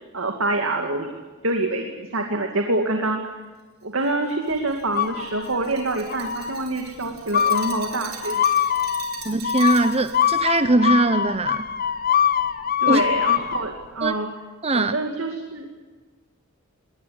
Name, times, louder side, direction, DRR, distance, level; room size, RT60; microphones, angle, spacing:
voice 1, 0.1-1.1 1.4-3.3 3.8-8.4 12.8-14.3 14.7-15.7, right 2 dB, 65° right, 3 dB, 2.5 m, -26 dB
Glass, 4.0-10.4, right 8 dB, 45° right, 4.7 m, -41 dB
sound 1, 4.9-5.7 6.1-6.6 7.3-13.6, left 9 dB, 45° left, 1.0 m, -23 dB
voice 2, 9.2-11.7 12.9-13.0 14.0-14.1 14.6-14.9, right 2 dB, 30° right, 10 dB, 0.9 m, -20 dB
21.5 x 19.5 x 9.6 m, 1.3 s
head